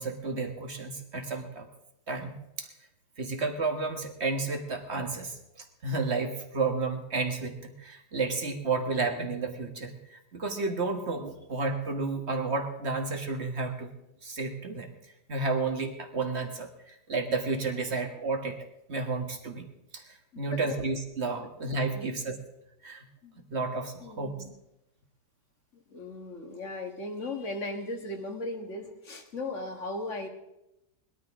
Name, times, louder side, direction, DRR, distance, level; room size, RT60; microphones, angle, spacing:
voice 1, 0.0-1.7 2.1-2.7 3.2-13.9 14.2-14.9 15.3-18.6 18.9-19.7 19.9-22.4 22.8-23.1 23.5-24.3, right 3 dB, 40° right, 4 dB, 1.8 m, -32 dB
voice 2, 20.3-20.8 21.6-22.1 23.2-23.5 24.0-24.5 25.9-30.3, left 2 dB, 45° left, 4 dB, 2.1 m, -37 dB
20.5 x 13.0 x 3.7 m, 0.88 s
omnidirectional pair, 1.8 m